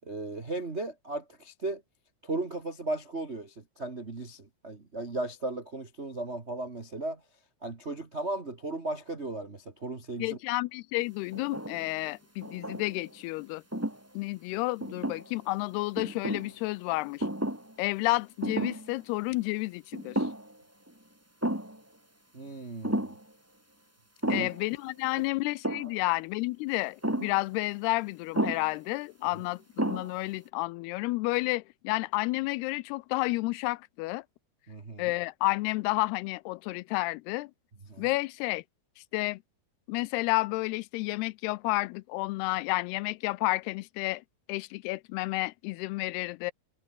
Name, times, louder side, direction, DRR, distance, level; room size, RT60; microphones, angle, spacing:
voice 1, 0.0-1.8 2.2-7.2 7.6-10.4 22.3-23.2 24.2-24.5 34.7-35.1 37.9-38.1, right 2 dB, 70° right, 0.6 m, -36 dB
voice 2, 10.2-13.6 14.1-17.3 17.8-20.3 24.3-34.2 35.0-37.5 38.0-38.6 39.1-39.4 39.9-44.2 44.5-46.5, left 21 dB, 80° left, 2.5 m, -31 dB
sound 1, 11.3-11.9 12.4-13.1 13.7-14.0 14.8-15.5 16.0-16.5 17.2-17.7 18.0-18.1 18.4-18.9 19.3-19.4 19.9-20.6 20.9-21.0 21.4-21.8 22.8-23.2 24.2-24.7 25.6-26.0 27.0-27.4 28.3-28.7 29.4-29.5 29.8-30.3, right 1 dB, 5° right, 1.6 m, -32 dB
omnidirectional pair, 4.8 m